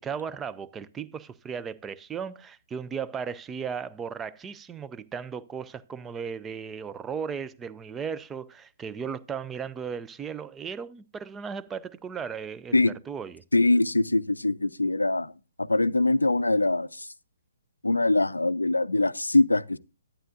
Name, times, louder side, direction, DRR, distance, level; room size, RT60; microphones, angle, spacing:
voice 1, 0.0-13.4, right 6 dB, 10° right, 0.4 m, -36 dB
voice 2, 13.5-15.3 15.6-17.1 17.8-19.8, left 2 dB, 75° left, 0.4 m, -23 dB
11.0 x 10.0 x 2.6 m
figure-of-eight pair, 130°, 0 cm